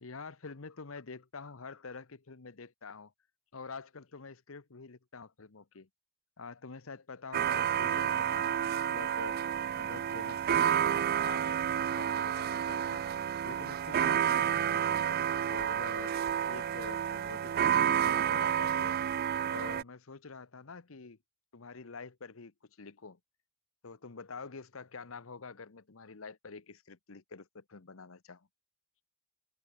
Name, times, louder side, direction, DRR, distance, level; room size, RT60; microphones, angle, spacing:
voice 1, 0.0-3.1 3.5-5.9 6.4-9.4 9.7-13.1 13.4-16.2 16.5-19.0 19.5-21.2 21.5-23.2 23.8-28.5, left 4 dB, 70° left, 1.0 m, -47 dB
sound 1, 7.3-19.8, right 9 dB, 45° right, 0.3 m, -30 dB
head